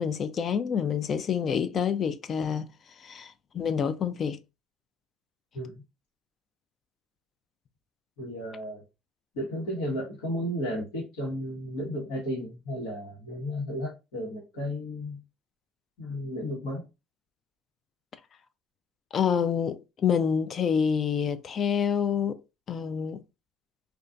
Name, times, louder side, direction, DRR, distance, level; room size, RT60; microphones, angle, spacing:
voice 1, 0.0-2.7 3.0-4.4 19.1-22.4 22.7-23.2, left 7 dB, 45° left, 0.3 m, -27 dB
voice 2, 8.2-8.8 9.3-15.2 16.0-16.9, equal, 75° left, 1.1 m, -33 dB
2.5 x 2.2 x 2.3 m
hypercardioid pair, 75°, 0 cm